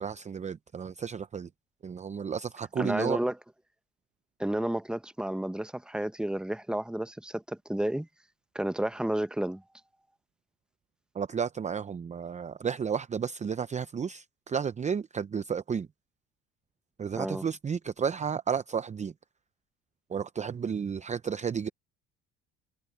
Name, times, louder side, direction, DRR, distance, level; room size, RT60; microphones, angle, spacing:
voice 1, 0.0-1.5 1.8-3.2 11.1-15.9 17.0-19.1 20.1-21.7, right 7 dB, 25° right, 0.6 m, -32 dB
voice 2, 2.8-3.3 4.4-8.1 8.5-9.6 17.1-17.4, right 1 dB, 5° right, 1.1 m, -31 dB
supercardioid pair, 95°, 29 cm